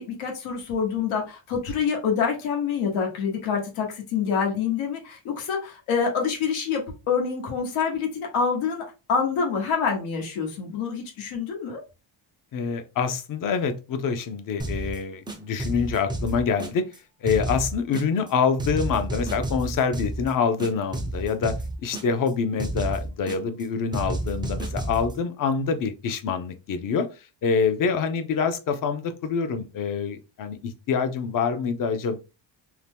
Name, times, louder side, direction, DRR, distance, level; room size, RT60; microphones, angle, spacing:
voice 1, 0.0-11.8, left 6 dB, 85° left, 1 dB, 1.1 m, -26 dB
voice 2, 12.5-16.8 17.2-21.5 21.8-27.1 27.4-32.2, left 6 dB, 45° left, 9 dB, 0.6 m, -26 dB
sound 1, 14.6-15.0 15.3-17.0 17.3-18.3 18.6-20.3 20.6-22.3 22.6-23.6 23.9-25.1, right 2 dB, 10° right, 0.4 m, -31 dB
2.8 x 2.1 x 3.3 m, 0.29 s
cardioid pair, 130°, 47 cm